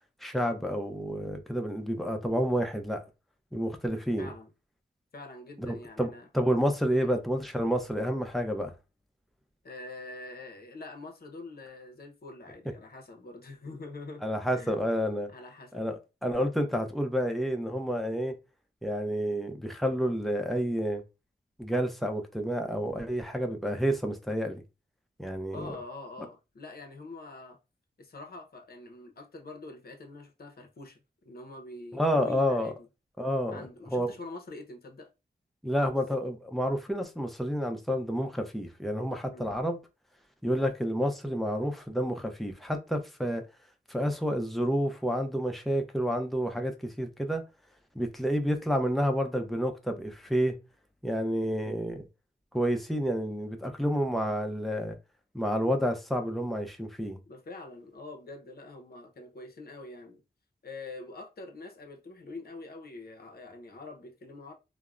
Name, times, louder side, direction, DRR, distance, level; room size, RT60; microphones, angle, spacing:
voice 1, 0.2-3.0 3.5-4.3 5.6-8.7 14.2-15.3 15.7-18.4 18.8-21.0 21.6-24.6 25.2-25.7 31.9-32.7 33.2-33.6 33.9-34.1 35.6-39.8 40.4-43.4 43.9-47.4 47.9-50.6 51.0-52.1 52.5-55.0 55.3-57.2, equal, ahead, 0.6 m, -29 dB
voice 2, 4.2-4.5 5.1-6.3 7.0-7.2 9.6-14.7 15.3-15.8 25.5-27.6 28.0-32.9 33.5-35.1 35.8-35.9 39.3-39.5 51.6-51.9 57.3-60.2 60.6-64.5, left 2 dB, 55° left, 0.7 m, -45 dB
3.4 x 2.0 x 2.4 m
wide cardioid pair, 60°, 19 cm